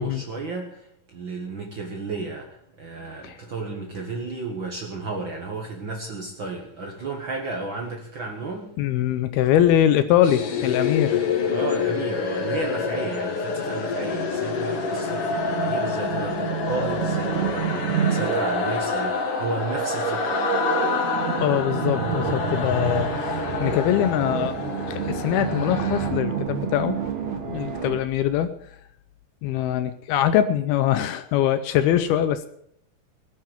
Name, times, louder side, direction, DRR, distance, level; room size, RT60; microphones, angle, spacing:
voice 1, 0.0-8.7 11.5-20.4, right 3 dB, 70° right, 1 dB, 1.1 m, -33 dB
voice 2, 8.8-11.2 21.4-24.6 24.8-27.0 27.5-28.5 29.4-32.5, left 11 dB, 80° left, 12 dB, 2.4 m, -22 dB
sound 1, 10.2-26.1, left 5 dB, 55° left, 1.7 m, -27 dB
sound 2, 11.6-28.0, right 8 dB, 50° right, 2.7 m, -30 dB
19.5 x 7.7 x 7.0 m, 0.69 s
omnidirectional pair, 4.7 m